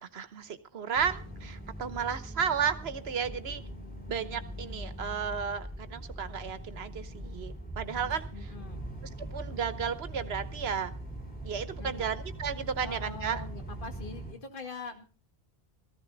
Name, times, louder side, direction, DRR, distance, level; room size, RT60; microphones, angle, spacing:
voice 1, 0.0-3.6 4.1-8.5 9.2-10.9 11.4-13.4, right 7 dB, 80° right, 12 dB, 1.2 m, -33 dB
sound 1, 0.9-14.3, right 1 dB, 10° left, 3.8 m, -41 dB
voice 2, 8.3-8.9 11.8-12.1 12.8-15.0, left 4 dB, 55° left, 5 dB, 2.1 m, -43 dB
15.0 x 14.5 x 3.9 m, 0.36 s
omnidirectional pair, 1.0 m